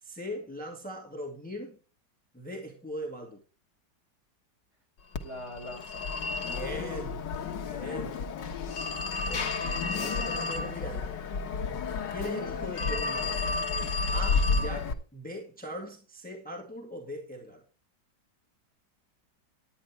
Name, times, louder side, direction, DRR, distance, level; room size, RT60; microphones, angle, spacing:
voice 1, 0.0-1.8 2.3-3.4 6.4-7.2 7.7-8.3 9.3-9.6 9.9-11.3 12.1-13.6 14.1-17.6, equal, 5° left, 2.1 m, -40 dB
Telephone, 5.1-14.9, left 4 dB, 80° left, 1.9 m, -31 dB
voice 2, 5.2-6.0 6.4-7.1, left 1 dB, 40° right, 4.9 m, -43 dB
12.0 x 9.4 x 4.6 m
omnidirectional pair, 1.9 m